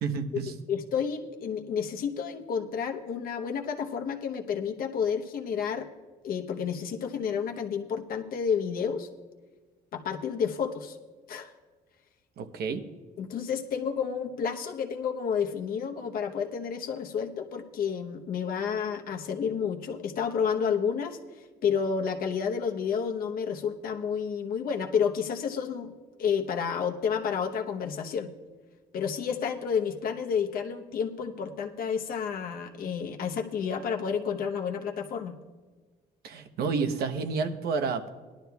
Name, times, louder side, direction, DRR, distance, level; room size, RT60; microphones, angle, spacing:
voice 1, 0.0-0.5 12.4-12.8 36.2-38.1, right 5 dB, 70° right, 8 dB, 0.9 m, -30 dB
voice 2, 0.7-5.9 6.2-9.1 9.9-11.0 11.3-11.5 13.2-21.2 21.6-25.9 26.2-28.3 28.9-35.3, left 7 dB, 60° left, 3 dB, 0.9 m, -30 dB
18.5 x 11.5 x 2.3 m, 1.4 s
cardioid pair, 110°, 17 cm